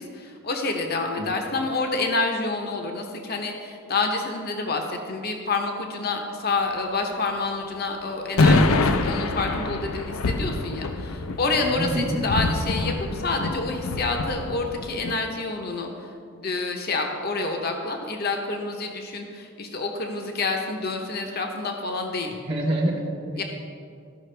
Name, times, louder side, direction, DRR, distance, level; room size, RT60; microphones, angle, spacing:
voice 1, 0.0-22.3 23.4-23.5, left 3 dB, 45° left, 3 dB, 0.8 m, -28 dB
sound 1, 8.4-15.1, left 3 dB, 75° left, 0.5 m, -25 dB
voice 2, 11.6-12.2 22.3-23.4, right 1 dB, 25° right, -4 dB, 0.9 m, -27 dB
14.0 x 5.7 x 3.3 m, 2.4 s
head